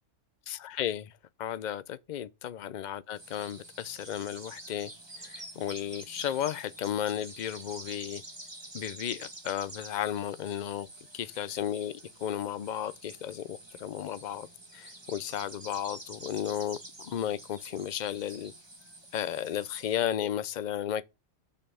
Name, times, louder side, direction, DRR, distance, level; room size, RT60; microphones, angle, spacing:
voice 1, 0.5-1.1 1.4-8.2 8.7-10.9 11.1-14.5 14.7-18.5 19.1-21.1, left 10 dB, 60° left, 0.5 m, -34 dB
sound 1, 3.1-19.9, right 1 dB, 20° right, 1.9 m, -48 dB
6.5 x 5.3 x 6.9 m
omnidirectional pair, 1.4 m